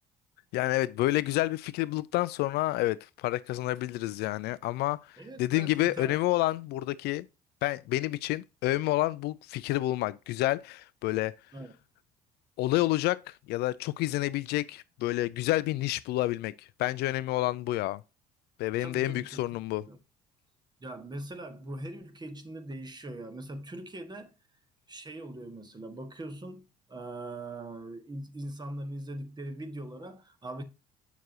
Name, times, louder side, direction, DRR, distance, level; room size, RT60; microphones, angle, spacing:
voice 1, 0.5-7.2 7.6-11.3 12.6-18.0 18.6-19.8, left 17 dB, 55° left, 0.4 m, -29 dB
voice 2, 5.2-6.2 11.5-11.8 18.8-19.5 19.9-20.0 20.8-24.3 24.9-30.6, right 1 dB, 20° right, 1.5 m, -41 dB
8.1 x 6.5 x 2.7 m
figure-of-eight pair, 55°, 20 cm